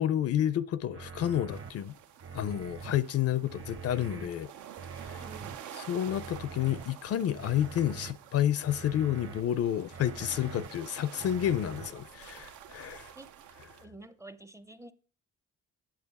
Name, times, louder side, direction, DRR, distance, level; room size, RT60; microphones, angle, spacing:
voice 1, 0.0-2.0 2.3-4.5 5.0-5.2 5.8-13.1, left 11 dB, 55° left, 0.5 m, -30 dB
sound 1, 0.9-1.7 2.2-3.0 3.5-4.3 4.8-5.6 6.1-6.8 7.3-8.1 8.6-9.4 9.9-10.7 11.2-11.9, right 5 dB, 45° right, 1.1 m, -44 dB
sound 2, 1.5-13.9, right 9 dB, 80° right, 0.7 m, -49 dB
voice 2, 5.2-5.6 13.1-13.4 13.8-14.9, right 2 dB, 10° right, 0.5 m, -49 dB
8.9 x 7.5 x 4.1 m
cardioid pair, 90°, 30 cm